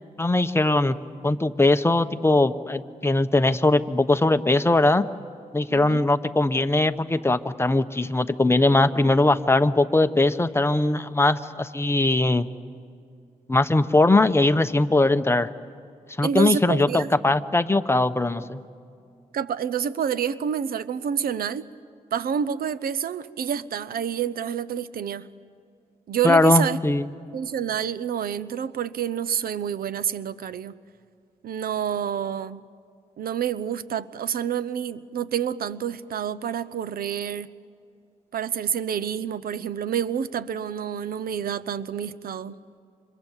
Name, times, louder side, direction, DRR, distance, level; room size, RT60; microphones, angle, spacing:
voice 1, 0.2-1.0 1.2-5.0 5.5-12.5 13.5-15.5 16.2-18.6 26.2-27.1, left 2 dB, 15° left, 9 dB, 1.0 m, -20 dB
voice 2, 5.7-6.0 15.1-15.2 16.2-17.1 19.3-21.6 22.1-25.3 26.1-26.8 27.3-30.8 31.4-32.6 33.2-37.5 38.3-42.6, right 8 dB, 80° right, 16 dB, 0.8 m, -28 dB
29.5 x 27.0 x 7.4 m, 2.4 s
cardioid pair, 90°, 15 cm